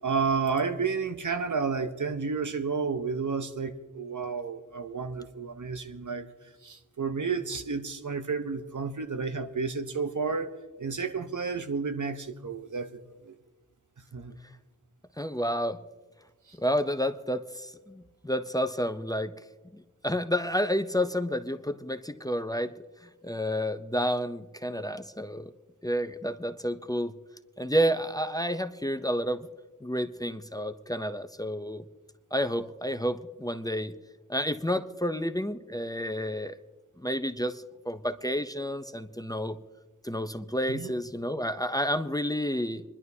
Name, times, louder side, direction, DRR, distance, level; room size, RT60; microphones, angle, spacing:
voice 1, 0.0-6.3 6.6-10.5 10.8-13.3 14.1-14.4 16.5-16.6 40.7-40.9, right 5 dB, 70° right, 7 dB, 0.9 m, -31 dB
voice 2, 15.2-15.8 16.5-19.3 19.7-22.7 23.0-25.5 25.8-27.2 27.6-29.5 29.8-31.8 32.3-33.9 34.3-36.6 37.0-39.6 40.0-42.8, equal, 10° left, 9 dB, 0.6 m, -30 dB
26.0 x 11.0 x 2.7 m, 1.2 s
wide cardioid pair, 45°, 32 cm